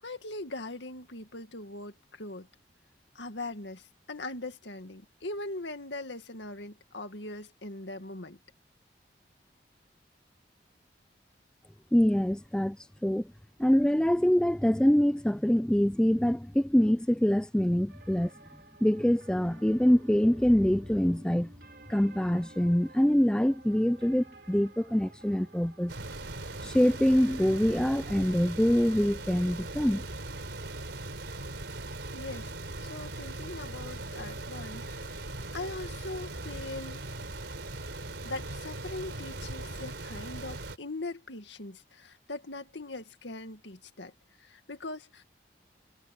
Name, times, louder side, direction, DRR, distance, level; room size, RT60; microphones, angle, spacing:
voice 1, 0.0-2.5 3.1-8.4 32.1-32.5 32.8-35.2 35.5-37.1 38.2-45.2, left 2 dB, 80° left, 2.1 m, -41 dB
voice 2, 11.9-12.8 13.0-13.3 13.6-18.3 18.8-21.5 21.9-25.9 26.6-30.0, equal, 5° left, 0.3 m, -25 dB
sound 1, 17.9-28.3, right 2 dB, 60° right, 3.8 m, -54 dB
sound 2, 25.9-40.8, right 2 dB, 80° right, 3.8 m, -39 dB
head